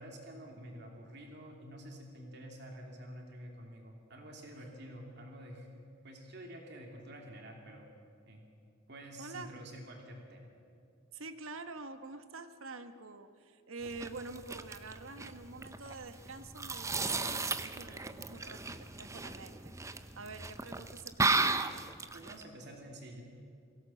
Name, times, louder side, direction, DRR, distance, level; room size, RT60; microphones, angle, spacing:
voice 1, 0.0-5.7 6.0-7.9 8.3-8.5 8.9-10.5 22.1-23.2, right 1 dB, 55° right, 1 dB, 2.9 m, -49 dB
voice 2, 9.2-9.5 11.1-21.6, right 3 dB, 75° right, 9 dB, 1.3 m, -47 dB
sound 1, 13.8-22.4, right 3 dB, 15° right, 0.7 m, -35 dB
22.5 x 17.0 x 7.7 m, 2.6 s
head